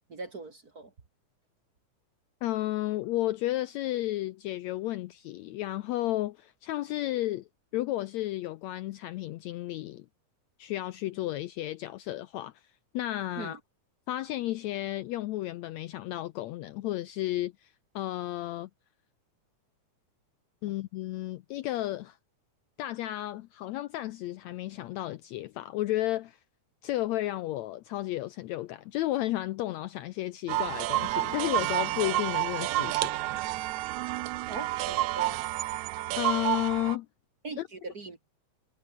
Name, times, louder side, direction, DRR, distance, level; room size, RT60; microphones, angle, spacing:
voice 1, 0.1-0.9 13.4-13.6 20.7-20.8 34.5-35.4 37.4-38.2, right 3 dB, 35° right, 2.0 m, -41 dB
voice 2, 2.4-7.5 7.7-10.0 10.6-12.6 12.9-13.6 14.1-18.7 20.6-22.2 22.8-26.4 26.8-33.1 36.2-37.1 37.6-37.7, left 15 dB, 80° left, 1.7 m, -32 dB
sound 1, 30.5-37.0, right 16 dB, 75° right, 1.9 m, -30 dB
omnidirectional pair, 3.7 m